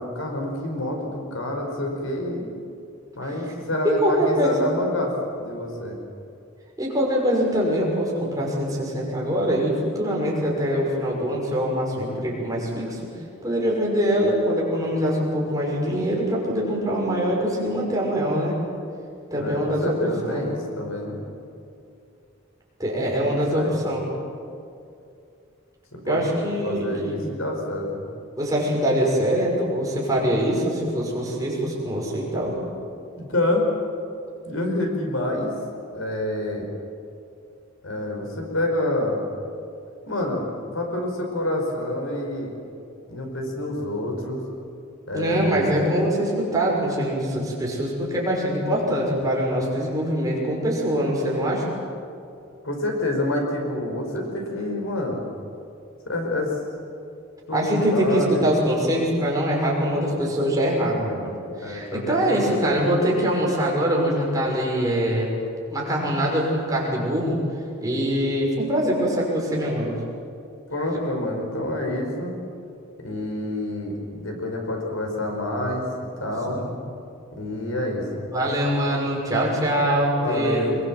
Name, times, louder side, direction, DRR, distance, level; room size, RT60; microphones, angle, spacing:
voice 1, 0.0-2.5 3.2-6.0 19.4-21.2 23.2-23.8 25.9-26.2 26.6-28.0 33.2-33.6 34.5-35.5 35.9-36.7 37.8-39.2 40.1-42.5 43.1-44.4 45.1-45.7 52.6-55.3 56.1-56.5 57.5-58.4 61.6-62.5 70.7-72.4 73.0-75.8 76.2-76.6 77.3-78.3 80.2-80.8, left 1 dB, 90° left, 1 dB, 5.3 m, -27 dB
voice 2, 3.8-4.7 6.8-13.0 13.4-18.5 19.3-20.4 22.8-24.1 26.1-27.2 28.4-32.6 45.1-51.7 57.5-65.3 65.7-67.4 67.8-70.0 76.5-76.7 78.3-80.6, equal, 15° right, -3 dB, 6.0 m, -23 dB
24.5 x 22.5 x 7.6 m, 2.5 s
head